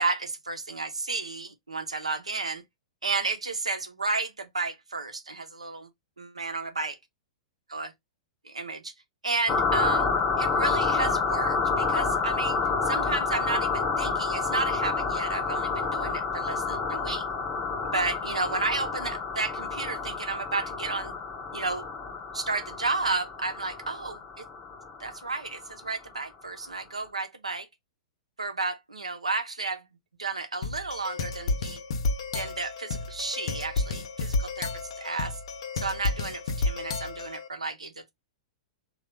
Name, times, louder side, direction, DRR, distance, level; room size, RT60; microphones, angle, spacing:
voice 1, 0.0-2.6 3.0-5.9 6.2-7.0 7.7-7.9 8.4-8.9 9.2-10.1 10.4-17.3 17.8-21.1 21.5-21.8 22.3-24.4 25.0-27.7 28.4-29.9 30.2-31.8 32.3-35.4 35.8-38.1, right 3 dB, 85° right, 0.7 m, -32 dB
sound 1, 9.5-25.7, left 4 dB, 20° left, 0.7 m, -29 dB
sound 2, 30.6-37.5, left 3 dB, 60° left, 0.6 m, -31 dB
3.1 x 2.3 x 3.0 m
figure-of-eight pair, 105°, 3 cm